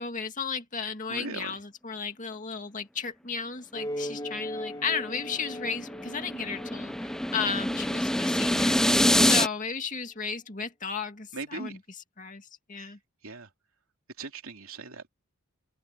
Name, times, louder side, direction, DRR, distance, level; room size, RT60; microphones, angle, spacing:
voice 1, 0.0-11.8 12.2-13.0, left 5 dB, 35° left, 2.3 m, -34 dB
voice 2, 1.1-1.6 11.3-11.8 12.8-12.9 13.2-13.5 14.2-15.1, right 3 dB, 70° right, 3.0 m, -39 dB
sound 1, 3.7-8.7, equal, 20° left, 2.0 m, -40 dB
sound 2, 5.2-9.5, left 1 dB, ahead, 0.5 m, -25 dB
open air
head